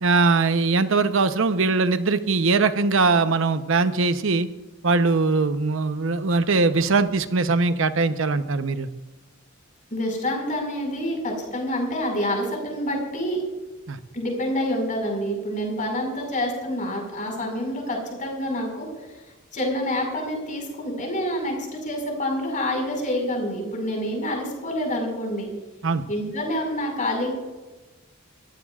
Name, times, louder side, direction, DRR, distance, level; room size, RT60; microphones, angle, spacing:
voice 1, 0.0-4.5 4.8-8.9 13.9-14.0 25.8-26.0, right 3 dB, 70° right, 11 dB, 0.8 m, -21 dB
voice 2, 9.9-13.4 14.1-19.2 19.5-25.5 26.1-27.3, left 1 dB, 40° left, 1 dB, 5.2 m, -27 dB
26.5 x 15.0 x 2.4 m, 1.2 s
head